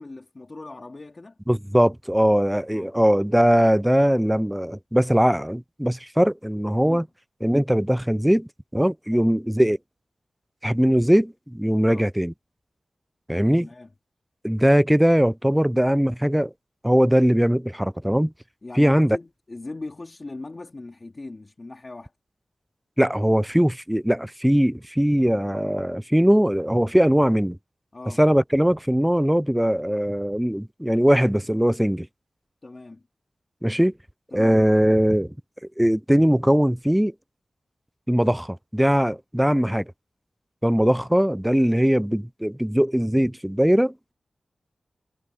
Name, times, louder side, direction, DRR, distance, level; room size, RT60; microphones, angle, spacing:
voice 1, 0.0-1.4 2.7-2.9 6.8-7.0 9.1-9.3 11.8-12.1 13.5-13.9 18.6-22.1 27.9-28.2 32.6-33.0 34.3-34.7, left 2 dB, 40° left, 2.8 m, -39 dB
voice 2, 1.5-7.1 7.4-9.8 10.6-12.3 13.3-13.7 14.4-16.5 16.8-18.3 18.8-19.2 23.0-27.6 28.2-32.1 33.6-33.9 34.3-35.3 35.8-37.1 38.1-39.8 40.6-43.9, equal, 5° right, 0.3 m, -20 dB
wide cardioid pair, 75°, 0 cm